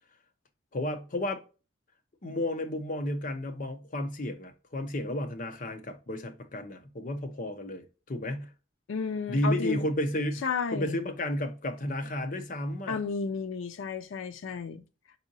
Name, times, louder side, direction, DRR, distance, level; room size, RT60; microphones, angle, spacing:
voice 1, 0.7-1.4 2.2-8.5 9.3-10.4 10.7-13.0, left 1 dB, 45° left, 0.6 m, -32 dB
voice 2, 8.9-9.8 10.4-11.0 12.9-14.8, left 5 dB, 80° left, 0.4 m, -32 dB
4.1 x 3.6 x 2.7 m
head